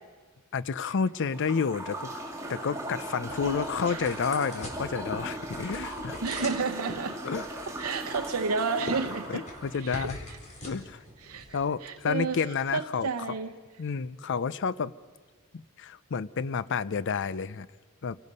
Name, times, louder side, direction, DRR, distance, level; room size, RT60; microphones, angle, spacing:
voice 1, 0.5-2.1 2.5-6.2 7.2-7.4 9.3-10.2 10.6-11.0 11.5-13.1 13.8-14.9 15.5-17.7 18.0-18.2, left 5 dB, 55° left, 0.5 m, -30 dB
sound 1, 1.1-9.8, right 1 dB, 15° right, 2.0 m, -38 dB
sound 2, 2.2-12.4, left 1 dB, 35° left, 4.3 m, -44 dB
voice 2, 6.2-7.1 7.8-9.4 9.7-10.7 11.2-13.5, right 4 dB, 80° right, 0.8 m, -32 dB
27.5 x 18.5 x 5.4 m
head